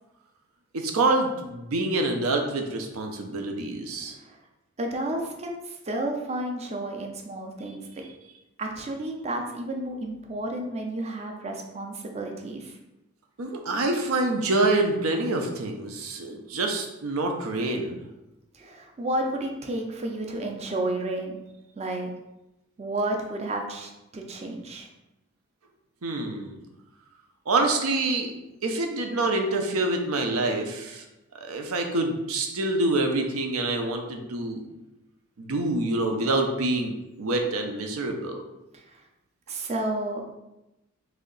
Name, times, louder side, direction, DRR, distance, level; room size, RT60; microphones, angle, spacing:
voice 1, 0.7-4.1 13.4-18.0 26.0-26.6 27.5-28.3 28.6-31.0 31.4-34.6 35.4-38.4, right 2 dB, 85° right, 3 dB, 0.6 m, -26 dB
voice 2, 4.8-8.1 8.6-12.7 18.5-21.4 21.7-22.1 22.8-24.9 38.7-38.8 39.5-40.3, right 1 dB, 30° right, 2 dB, 0.5 m, -31 dB
3.2 x 2.8 x 3.9 m, 0.96 s
head